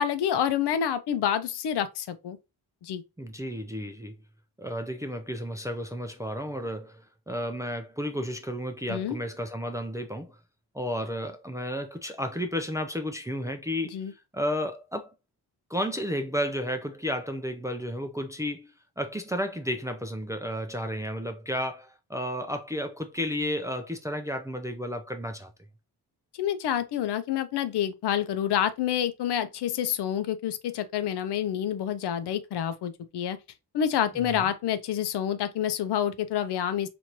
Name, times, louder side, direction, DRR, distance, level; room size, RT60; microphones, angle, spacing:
voice 1, 0.0-2.4 2.8-3.0 8.9-9.2 13.9-14.1 26.4-33.4 33.7-36.9, left 9 dB, 80° left, 0.6 m, -28 dB
voice 2, 3.2-4.1 4.6-10.4 10.7-15.1 15.7-18.7 19.0-25.5 34.2-34.5, equal, 10° right, 0.3 m, -32 dB
4.5 x 2.6 x 2.8 m
wide cardioid pair, 140°, 40 cm